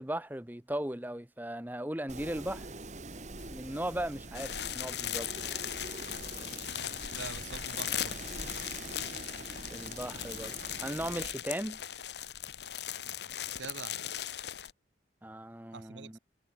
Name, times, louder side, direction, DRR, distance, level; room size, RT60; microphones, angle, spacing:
voice 1, 0.0-2.7 3.5-5.3 9.7-11.8 15.2-16.2, right 1 dB, 10° right, 1.1 m, -37 dB
Wind, 2.1-11.3, right 2 dB, 40° right, 1.8 m, -45 dB
sound 1, 3.4-11.4, left 2 dB, 85° left, 3.3 m, -56 dB
sound 2, 4.3-14.7, left 11 dB, 65° left, 1.1 m, -38 dB
voice 2, 7.1-8.2 13.0-13.1 13.6-14.0 15.7-16.2, right 5 dB, 80° right, 0.9 m, -44 dB
head